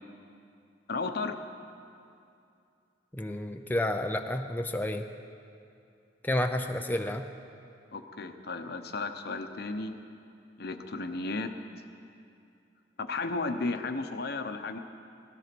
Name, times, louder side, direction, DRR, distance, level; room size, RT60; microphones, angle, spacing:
voice 1, 0.9-1.4 7.9-10.0 10.6-11.5 13.0-14.8, left 3 dB, 60° left, 7 dB, 0.9 m, -34 dB
voice 2, 3.1-5.0 6.2-7.3, left 1 dB, 10° left, 5 dB, 0.5 m, -30 dB
18.0 x 13.0 x 6.0 m, 2.6 s
head